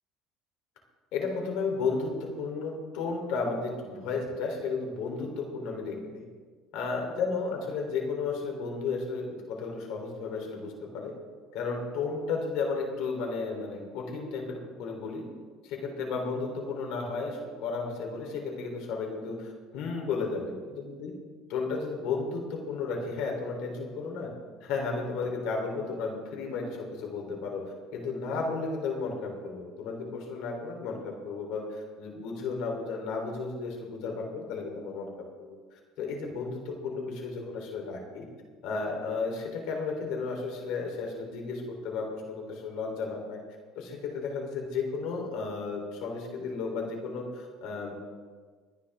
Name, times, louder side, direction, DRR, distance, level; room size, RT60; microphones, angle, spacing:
voice 1, 1.1-6.2 6.7-11.1 11.5-15.3 15.6-21.1 21.5-24.3 24.6-35.1 35.4-38.3 38.6-43.4 43.8-47.9, left 4 dB, 70° left, 1 dB, 3.9 m, -33 dB
22.5 x 10.0 x 3.8 m, 1.5 s
cardioid pair, 140°, 0 cm